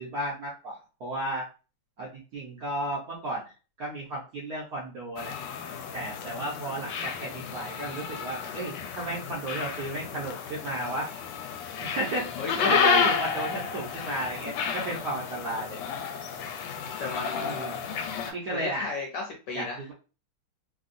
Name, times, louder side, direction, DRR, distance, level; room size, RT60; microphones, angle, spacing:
voice 1, 0.0-1.5 2.0-3.5 3.8-5.4 5.9-11.1 11.8-12.3 12.6-15.8 16.6-16.8 17.4-17.8 18.3-18.9 19.5-19.9, right 1 dB, 60° right, -4 dB, 1.0 m, -33 dB
sound 1, 5.2-18.3, left 7 dB, 85° left, 1.5 m, -31 dB
voice 2, 12.4-13.0 17.0-17.7 18.2-19.9, left 3 dB, 65° left, 0 dB, 1.2 m, -35 dB
3.5 x 2.2 x 2.5 m, 0.34 s
omnidirectional pair, 2.4 m